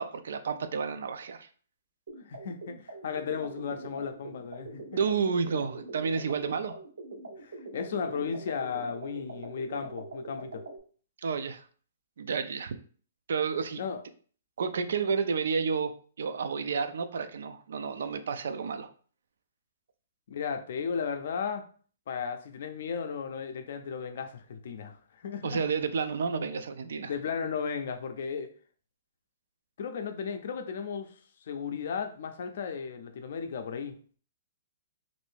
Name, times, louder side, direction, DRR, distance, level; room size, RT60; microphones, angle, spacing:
voice 1, 0.0-1.5 5.0-6.8 11.2-11.6 12.2-12.8 13.3-13.8 14.6-15.9 16.2-18.9 25.4-27.1, right 5 dB, 70° right, 0.3 m, -30 dB
sound 1, 2.1-10.8, right 2 dB, 85° right, 0.9 m, -43 dB
voice 2, 2.3-4.9 7.4-10.6 13.8-14.0 20.3-21.7 22.1-25.6 27.0-28.5 29.8-33.9, left 6 dB, 55° left, 0.4 m, -35 dB
2.6 x 2.5 x 3.4 m
hypercardioid pair, 165°, 0 cm